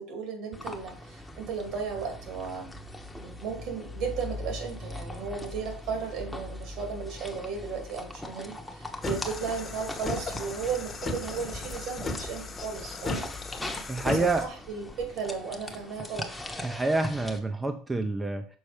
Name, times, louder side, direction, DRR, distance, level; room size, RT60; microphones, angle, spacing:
voice 1, 0.0-2.7 3.2-13.3 14.0-16.3, right 5 dB, 65° right, 4 dB, 2.5 m, -35 dB
sound 1, 0.5-17.4, left 1 dB, 5° left, 1.0 m, -41 dB
sound 2, 9.0-14.5, left 3 dB, 20° left, 1.1 m, -35 dB
voice 2, 13.9-14.5 16.6-18.5, right 2 dB, 15° right, 6 dB, 0.6 m, -27 dB
6.3 x 4.2 x 5.0 m, 0.43 s
supercardioid pair, 120°, 0 cm